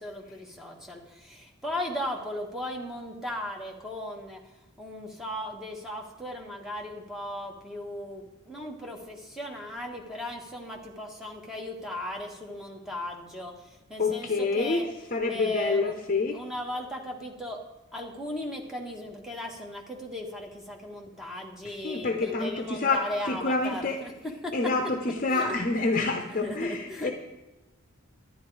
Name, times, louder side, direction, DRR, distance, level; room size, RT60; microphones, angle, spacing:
voice 1, 0.0-4.4 4.8-14.8 15.3-16.0 16.3-17.6 17.9-24.1 24.4-24.5 25.3-27.1, left 1 dB, ahead, 0 dB, 1.2 m, -37 dB
voice 2, 14.0-14.8 15.1-16.4 21.6-23.0 23.3-24.0 24.5-27.1, left 3 dB, 40° left, 4 dB, 0.6 m, -27 dB
10.5 x 9.9 x 4.7 m, 1.1 s
head